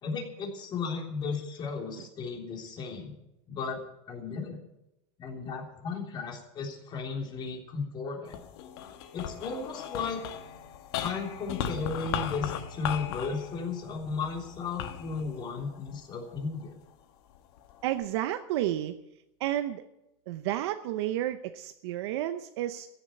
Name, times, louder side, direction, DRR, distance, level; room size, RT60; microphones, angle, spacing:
voice 1, 0.0-3.1 3.5-3.8 4.1-4.6 5.2-8.4 9.1-10.2 11.0-16.8, left 4 dB, 30° left, 1 dB, 3.5 m, -35 dB
sound 1, 8.3-16.7 17.3-18.1, left 9 dB, 75° left, 1.3 m, -38 dB
voice 2, 17.8-19.0 19.4-19.8 20.3-22.9, right 13 dB, 75° right, 8 dB, 0.8 m, -31 dB
15.0 x 7.4 x 9.4 m, 0.87 s
supercardioid pair, 135°, 14 cm